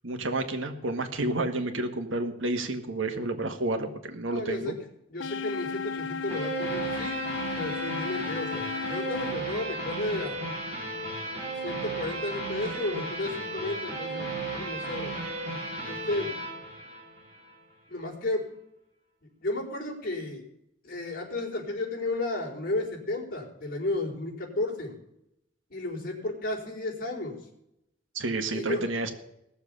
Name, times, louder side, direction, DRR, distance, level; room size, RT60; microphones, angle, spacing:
voice 1, 0.0-4.8 28.1-29.1, right 2 dB, 85° right, 6 dB, 1.8 m, -30 dB
voice 2, 4.3-4.7 5.1-7.2 7.6-10.4 11.6-15.1 15.9-16.3 17.9-18.5 19.4-20.4 20.8-25.0 25.7-27.4 28.5-28.8, left 2 dB, 50° left, -2 dB, 4.4 m, -33 dB
sound 1, 5.2-9.3, left 5 dB, 70° left, 0.6 m, -34 dB
C Guitar Lead, 6.3-17.6, right 2 dB, 35° right, 6.5 m, -35 dB
18.0 x 7.1 x 6.8 m, 0.80 s
head